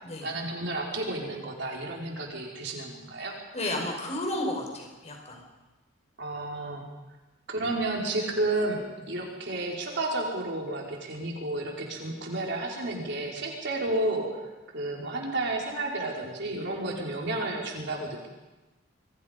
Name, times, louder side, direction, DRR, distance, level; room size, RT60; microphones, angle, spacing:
voice 1, 0.2-3.3 6.2-6.9 7.5-14.4 14.7-18.3, right 2 dB, 60° right, -1 dB, 4.7 m, -31 dB
voice 2, 3.5-5.4 16.9-17.0, left 1 dB, 35° left, 1 dB, 5.3 m, -32 dB
27.5 x 23.5 x 5.3 m, 1.1 s
head